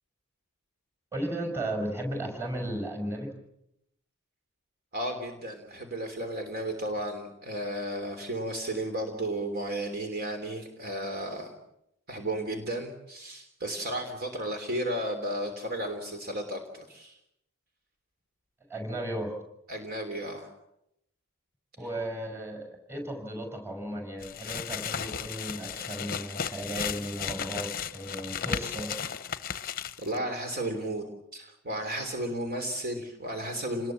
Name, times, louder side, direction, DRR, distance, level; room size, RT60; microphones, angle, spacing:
voice 1, 1.1-3.3 18.7-19.3 21.8-28.9, right 1 dB, 10° right, 4 dB, 6.3 m, -35 dB
voice 2, 4.9-11.5 12.1-17.2 19.7-20.5 30.0-31.1 31.3-33.9, right 1 dB, 45° right, 5 dB, 3.3 m, -33 dB
sound 1, 24.2-30.2, left 7 dB, 40° left, 0.9 m, -35 dB
28.5 x 20.5 x 7.5 m, 0.81 s
head